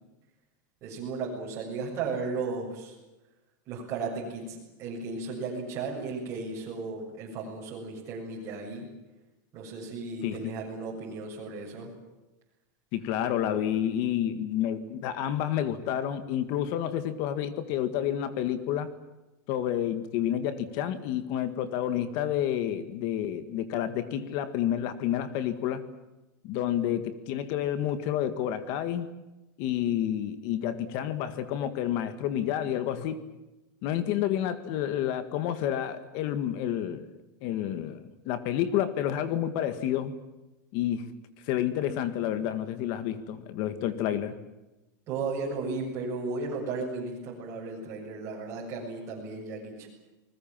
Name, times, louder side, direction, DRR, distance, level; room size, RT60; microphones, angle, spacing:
voice 1, 0.8-3.0 3.7-8.9 9.5-11.9 45.1-49.9, right 4 dB, 30° right, -4 dB, 7.2 m, -35 dB
voice 2, 10.2-10.5 12.9-18.9 19.5-25.8 26.4-29.1 29.6-33.2 33.8-37.1 37.4-40.1 40.7-41.1 41.5-44.4, left 10 dB, 40° left, 11 dB, 1.8 m, -29 dB
29.0 x 20.5 x 7.5 m, 1.0 s
supercardioid pair, 170°, 10 cm